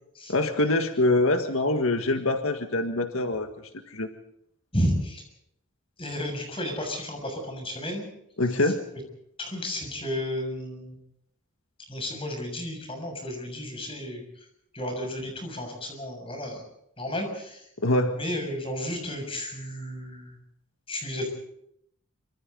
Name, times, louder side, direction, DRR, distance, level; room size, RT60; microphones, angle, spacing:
voice 1, 0.3-3.5 3.9-4.1 8.4-8.9 17.8-18.2, left 2 dB, 80° left, 6 dB, 1.8 m, -24 dB
voice 2, 4.7-5.2 6.0-8.0 9.4-11.0 11.9-14.2 14.7-16.6 17.0-17.6 18.1-20.3 20.9-21.3, left 1 dB, 25° left, 4 dB, 6.9 m, -32 dB
26.0 x 25.5 x 4.0 m, 0.74 s
head